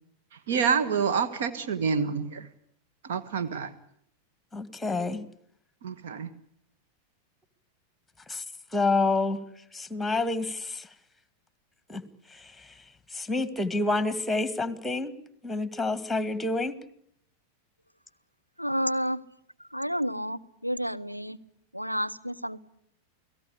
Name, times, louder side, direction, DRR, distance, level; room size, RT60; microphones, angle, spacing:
voice 1, 0.5-2.5 3.0-3.7 5.8-6.3, right 6 dB, 55° right, 10 dB, 1.7 m, -27 dB
voice 2, 4.5-5.2 8.3-8.4 8.7-9.4 9.7-10.9 11.9-12.0 13.1-15.1 15.4-16.8, left 3 dB, 5° left, 14 dB, 2.2 m, -28 dB
voice 3, 18.6-19.2 19.7-21.4 21.7-22.6, equal, 90° right, 9 dB, 1.1 m, -30 dB
29.5 x 18.0 x 8.5 m, 0.70 s
figure-of-eight pair, 90°, 0 cm